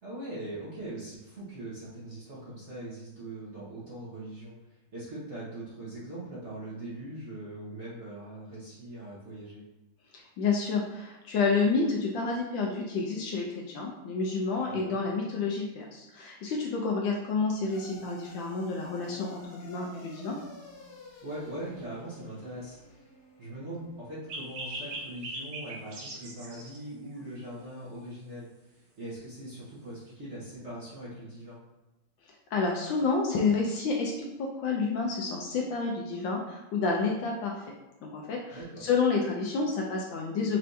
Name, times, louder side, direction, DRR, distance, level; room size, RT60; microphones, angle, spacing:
voice 1, 0.0-9.6 14.7-15.0 21.2-23.1 23.4-31.6 38.5-38.9, right 1 dB, 45° right, -9 dB, 0.9 m, -41 dB
voice 2, 10.1-20.4 32.5-34.1 34.4-37.7 38.0-40.6, left 4 dB, 75° left, -1 dB, 1.2 m, -29 dB
sound 1, 17.7-26.2, left 2 dB, 60° left, 1.2 m, -49 dB
sound 2, 24.3-26.8, right 2 dB, 75° right, 1.7 m, -39 dB
4.4 x 3.3 x 2.6 m, 1.0 s
omnidirectional pair, 2.4 m